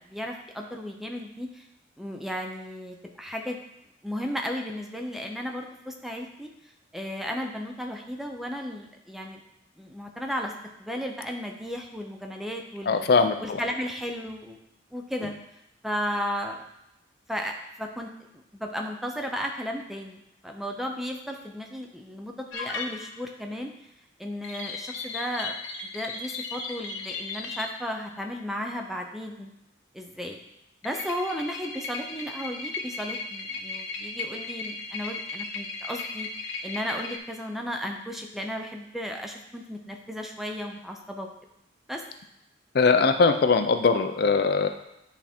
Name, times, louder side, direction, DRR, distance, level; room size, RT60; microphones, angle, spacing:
voice 1, 0.0-1.7 2.0-3.6 4.0-6.5 6.9-9.4 9.8-10.5 10.8-13.0 13.4-14.6 14.9-15.3 15.8-16.6 17.3-18.1 18.5-20.2 20.4-23.7 24.2-25.5 25.8-29.5 29.9-30.4 30.8-36.3 36.6-41.3 41.9-42.0, equal, ahead, 2 dB, 0.5 m, -34 dB
voice 2, 12.9-13.6 42.7-44.7, left 4 dB, 55° left, 7 dB, 0.4 m, -21 dB
sound 1, 22.5-23.4 24.4-27.8 30.8-37.2, left 3 dB, 90° left, 0.8 m, -36 dB
9.5 x 3.5 x 4.3 m, 0.83 s
head